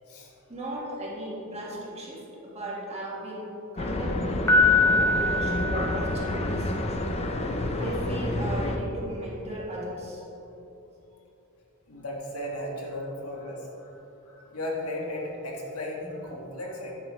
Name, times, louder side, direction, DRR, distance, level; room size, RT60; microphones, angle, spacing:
voice 1, 0.5-6.7 7.8-10.2, right 1 dB, 30° right, -4 dB, 1.8 m, -36 dB
sound 1, 3.8-8.8, left 1 dB, 30° left, 0.6 m, -29 dB
Piano, 4.5-6.6, left 3 dB, 15° left, 1.0 m, -23 dB
voice 2, 11.9-16.9, left 1 dB, 75° left, -2 dB, 1.6 m, -36 dB
9.9 x 8.9 x 3.2 m, 3.0 s
head